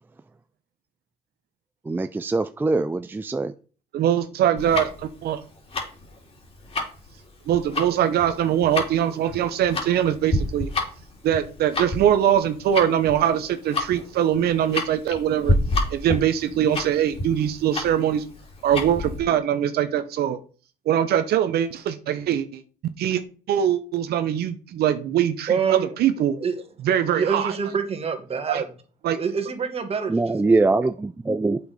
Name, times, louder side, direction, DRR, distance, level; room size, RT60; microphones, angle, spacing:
voice 1, 1.9-3.5 30.1-31.6, right 3 dB, 10° right, 0.4 m, -22 dB
voice 2, 3.9-5.4 7.5-10.7 11.2-15.5 15.9-18.2 18.6-20.4 20.9-22.6 23.0-23.2 23.5-26.4 26.8-27.5 28.5-28.6 29.0-29.2, right 10 dB, 70° right, 0.9 m, -22 dB
Tick-tock, 4.6-19.2, left 2 dB, 35° left, 3.2 m, -29 dB
voice 3, 25.5-26.0 26.4-26.6 27.1-28.6 29.2-30.6, right 6 dB, 35° right, 1.9 m, -26 dB
8.2 x 6.2 x 5.1 m
cardioid pair, 110°, 17 cm